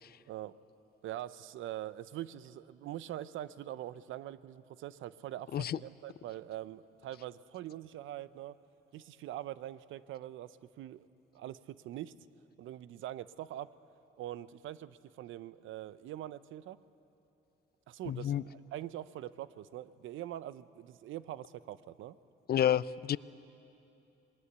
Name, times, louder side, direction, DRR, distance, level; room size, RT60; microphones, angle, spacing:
voice 1, 1.0-8.5 8.9-11.1 11.3-12.1 12.6-13.7 14.2-16.8 17.9-22.2, right 13 dB, 80° right, 16 dB, 0.7 m, -43 dB
voice 2, 18.1-18.4 22.5-23.2, left 10 dB, 50° left, 19 dB, 0.5 m, -29 dB
27.5 x 20.5 x 8.1 m, 2.8 s
cardioid pair, 90°, 20 cm